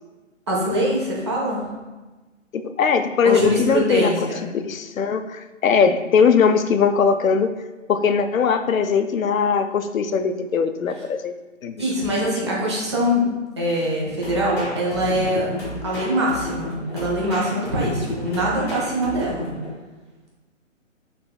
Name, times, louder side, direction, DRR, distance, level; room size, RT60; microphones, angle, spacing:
voice 1, 0.5-1.7 3.2-4.4 11.8-13.2 13.6-15.5 15.8-19.5, equal, 20° right, -4 dB, 0.6 m, -23 dB
voice 2, 2.5-4.1 4.5-7.5 7.9-11.3 11.6-11.8, left 6 dB, 90° left, 9 dB, 0.5 m, -20 dB
sound 1, 14.2-19.7, equal, 10° left, 0.7 m, -32 dB
5.5 x 3.3 x 2.2 m, 1.2 s
hypercardioid pair, 155°, 39 cm